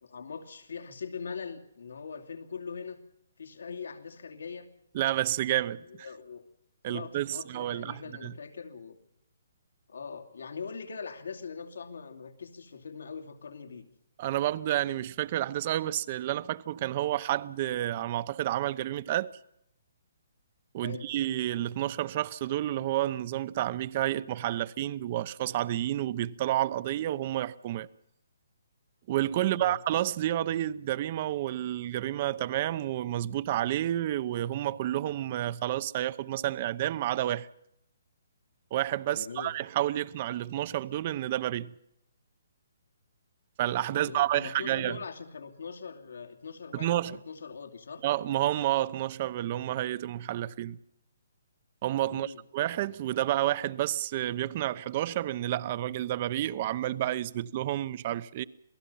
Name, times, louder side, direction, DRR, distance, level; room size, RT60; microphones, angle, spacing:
voice 1, 0.0-3.0 3.4-4.7 5.9-6.4 6.9-9.0 9.9-13.9 20.8-21.1 29.4-29.8 39.1-39.5 43.8-48.0 52.1-52.4, left 5 dB, 80° left, 2.7 m, -41 dB
voice 2, 4.9-5.8 6.8-8.3 14.2-19.3 20.7-27.9 29.1-37.5 38.7-41.7 43.6-45.0 46.7-47.2 48.0-50.8 51.8-58.4, right 13 dB, 30° right, 0.8 m, -30 dB
27.5 x 18.5 x 5.7 m
hypercardioid pair, 165°, 0 cm